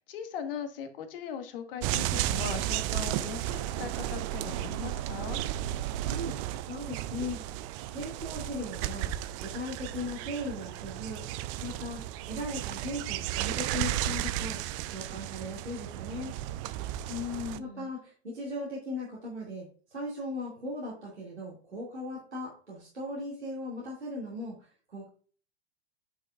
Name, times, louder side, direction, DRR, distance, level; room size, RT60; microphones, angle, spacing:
voice 1, 0.0-5.4 17.1-17.9, left 7 dB, 55° left, 7 dB, 1.4 m, -39 dB
sound 1, 1.8-17.6, right 13 dB, 30° right, 0.4 m, -34 dB
voice 2, 6.0-6.4 6.7-7.4 7.9-9.1 9.4-11.2 11.6-14.6 14.9-16.3 17.6-25.1, left 1 dB, 90° right, -6 dB, 2.6 m, -38 dB
9.2 x 5.5 x 2.4 m, 0.42 s
figure-of-eight pair, 95°, 33 cm